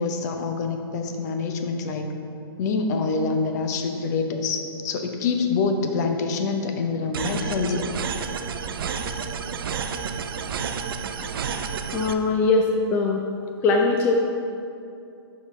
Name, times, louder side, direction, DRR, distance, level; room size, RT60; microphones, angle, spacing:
voice 1, 0.0-2.1 2.6-7.9 11.2-11.6, left 4 dB, 40° left, 5 dB, 0.7 m, -26 dB
sound 1, 7.1-12.1, right 6 dB, 60° right, 0.5 m, -30 dB
voice 2, 11.9-13.2 13.6-14.1, left 3 dB, 15° left, 1 dB, 0.3 m, -21 dB
9.4 x 5.1 x 3.2 m, 2.6 s
hypercardioid pair, 150°, 13 cm